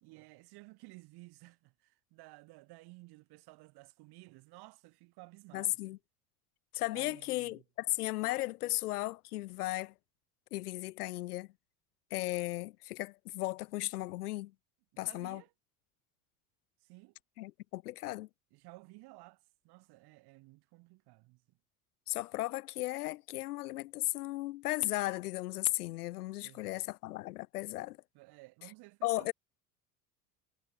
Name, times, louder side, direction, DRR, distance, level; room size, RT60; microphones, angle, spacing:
voice 1, 0.0-5.8 6.9-7.6 14.9-15.5 16.8-17.2 18.1-18.2 18.5-21.6 26.4-26.8 28.1-29.3, right 22 dB, 55° right, 1.9 m, -55 dB
voice 2, 5.5-6.0 6.7-9.9 10.5-11.5 12.1-14.5 15.0-15.4 17.4-18.3 22.1-28.0 29.0-29.3, left 18 dB, 75° left, 0.9 m, -35 dB
hypercardioid pair, 75°, 46 cm